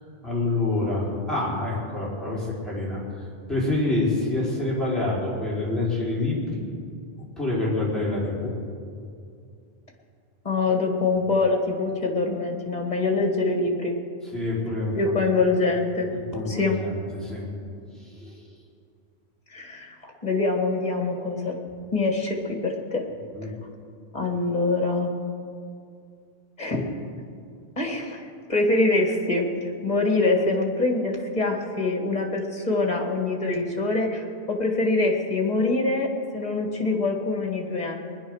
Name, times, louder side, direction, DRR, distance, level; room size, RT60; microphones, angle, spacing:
voice 1, 0.2-3.0 3.5-6.6 7.4-8.5 14.3-15.1 16.3-17.4 18.0-18.4 23.3-23.5, left 2 dB, ahead, -7 dB, 4.5 m, -27 dB
voice 2, 10.4-13.9 15.0-16.1 16.5-16.8 19.5-21.6 21.9-23.0 24.1-25.1 26.6-26.8 27.8-29.5 29.8-38.0, left 3 dB, 40° left, 2 dB, 2.2 m, -24 dB
21.0 x 10.5 x 6.4 m, 2.4 s
omnidirectional pair, 1.1 m